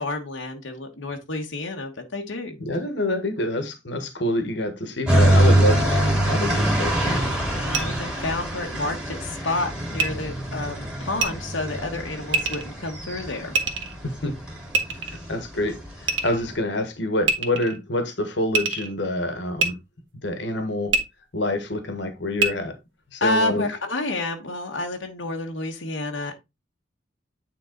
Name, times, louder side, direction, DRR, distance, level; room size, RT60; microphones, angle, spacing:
voice 1, 0.0-2.6 7.6-13.5 23.2-26.3, left 2 dB, 85° left, 1.3 m, -29 dB
voice 2, 2.6-7.2 14.0-14.3 15.0-19.8 20.2-20.9 21.3-22.7 23.1-23.6, left 1 dB, 65° left, 1.5 m, -27 dB
sound 1, 5.1-16.5, right 1 dB, 5° right, 2.3 m, -24 dB
sound 2, 7.7-7.8 10.0-10.1 11.2-11.3 12.3-12.6 13.5-14.0 14.7-15.2 16.1-16.4 17.2-17.8 18.5-18.9 19.6-19.7 20.9-21.0 22.4-22.5, right 4 dB, 80° right, 1.5 m, -23 dB
9.3 x 3.8 x 3.9 m
head